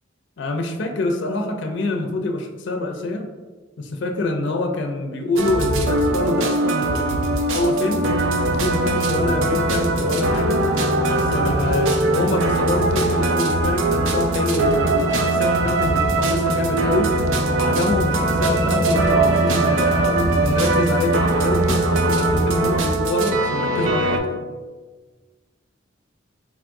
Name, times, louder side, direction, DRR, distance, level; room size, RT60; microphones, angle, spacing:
voice 1, 0.4-3.3 3.8-8.1 8.4-10.6 11.0-17.1 17.6-24.4, left 2 dB, 65° left, 4 dB, 0.4 m, -25 dB
sound 1, 5.4-24.2, right 2 dB, 85° right, 0.5 m, -21 dB
sound 2, 7.9-22.8, right 1 dB, 20° right, 0.3 m, -27 dB
4.0 x 2.5 x 4.5 m, 1.4 s
head